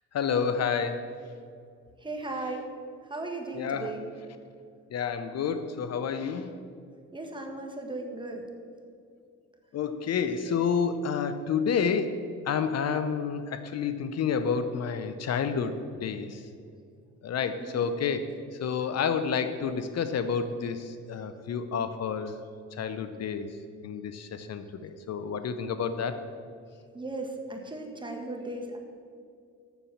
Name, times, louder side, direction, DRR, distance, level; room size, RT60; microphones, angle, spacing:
voice 1, 0.1-1.2 3.5-4.0 4.9-6.7 9.7-16.5 17.2-22.4 22.7-23.5 23.8-26.2, left 6 dB, 55° left, 10 dB, 0.7 m, -30 dB
voice 2, 2.0-2.7 3.1-4.1 7.1-8.4 17.6-17.8 26.9-28.8, right 2 dB, 15° right, 2 dB, 1.5 m, -36 dB
7.1 x 6.8 x 7.3 m, 2.4 s
cardioid pair, 90°, 30 cm